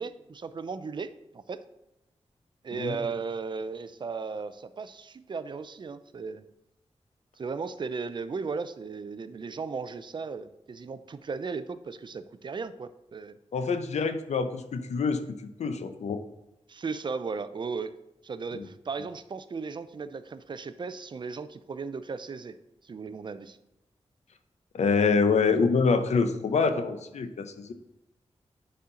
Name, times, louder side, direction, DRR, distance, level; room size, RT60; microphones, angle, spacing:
voice 1, 0.0-1.6 2.6-6.4 7.4-13.4 16.7-17.9 18.2-22.6 22.8-23.6, right 5 dB, 45° right, 12 dB, 0.4 m, -36 dB
voice 2, 13.5-15.2 15.6-16.2 18.6-18.7 24.7-27.7, left 4 dB, 85° left, 10 dB, 0.6 m, -26 dB
9.4 x 4.3 x 3.8 m, 0.90 s
wide cardioid pair, 100°, 11 cm